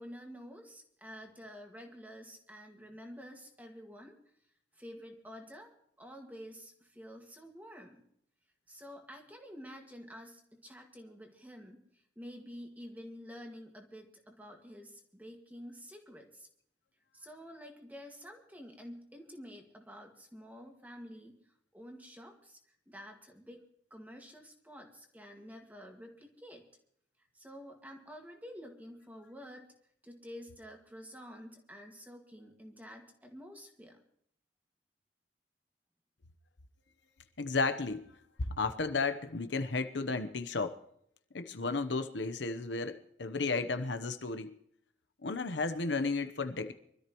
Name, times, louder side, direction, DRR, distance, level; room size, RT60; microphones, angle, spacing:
voice 1, 0.0-4.2 4.8-8.0 8.7-16.5 17.1-21.4 21.7-22.6 22.9-23.6 23.9-26.7 27.3-29.7 30.0-34.0, equal, 10° right, 1.9 m, -49 dB
voice 2, 37.4-38.1 38.4-40.8 41.3-44.6 45.2-46.7, left 3 dB, 75° left, 1.0 m, -33 dB
24.5 x 13.5 x 3.1 m
head